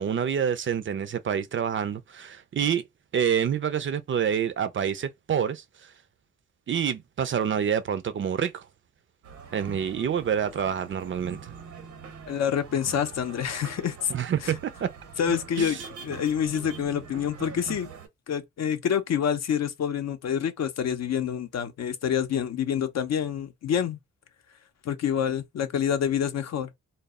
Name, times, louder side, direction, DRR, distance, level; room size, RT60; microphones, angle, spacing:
voice 1, 0.0-2.8 3.1-5.9 6.7-8.7 9.5-11.4 14.1-14.9 15.6-15.8, right 8 dB, 45° right, 0.4 m, -27 dB
sound 1, 9.2-18.1, right 5 dB, 85° right, 0.8 m, -43 dB
voice 2, 12.3-14.1 14.4-14.5 15.2-17.9 18.3-24.0 24.8-26.7, left 8 dB, 65° left, 0.5 m, -27 dB
2.0 x 2.0 x 3.4 m
cardioid pair, 65°, 29 cm